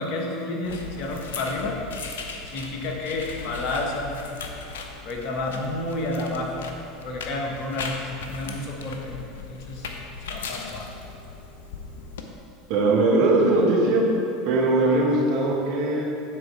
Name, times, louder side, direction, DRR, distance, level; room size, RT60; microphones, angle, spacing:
voice 1, 0.0-1.8 2.5-4.1 5.0-6.7 7.0-9.9 10.3-10.9, left 2 dB, 50° left, 0 dB, 1.3 m, -30 dB
sound 1, 0.6-12.2, left 5 dB, 70° left, 0.6 m, -38 dB
voice 2, 12.7-14.1 14.4-16.0, right 2 dB, 55° right, -3 dB, 1.5 m, -20 dB
9.4 x 4.2 x 4.7 m, 2.7 s
figure-of-eight pair, 80°, 0 cm